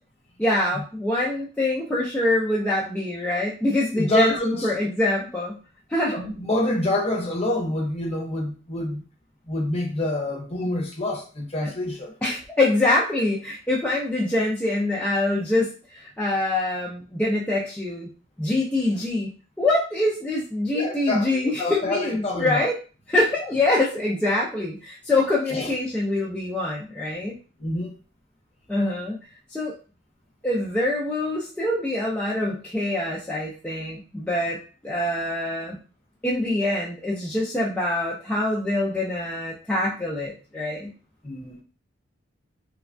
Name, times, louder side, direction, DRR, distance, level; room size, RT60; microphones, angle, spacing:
voice 1, 0.4-5.6 5.9-6.2 11.6-11.7 12.2-18.1 18.4-22.8 23.1-27.4 28.7-29.2 29.5-29.7 30.4-35.8 36.2-40.9, left 2 dB, 5° left, 0.3 m, -25 dB
voice 2, 4.0-4.7 6.1-9.0 9.5-12.1 20.7-22.7 25.5-25.7 27.6-27.9 41.2-41.6, left 1 dB, 30° left, 0.7 m, -27 dB
3.1 x 2.1 x 2.5 m
head